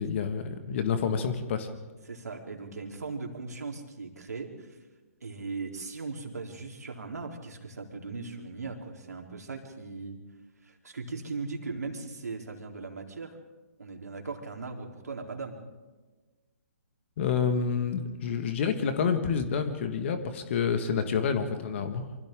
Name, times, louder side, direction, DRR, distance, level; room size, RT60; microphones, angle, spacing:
voice 1, 0.0-1.7 17.2-22.0, left 6 dB, 50° left, 8 dB, 1.9 m, -28 dB
voice 2, 2.1-4.8 5.2-10.2 10.6-13.4 13.8-15.6, right 4 dB, 80° right, 2 dB, 3.8 m, -38 dB
28.5 x 24.5 x 3.8 m, 1.3 s
hypercardioid pair, 135°, 9 cm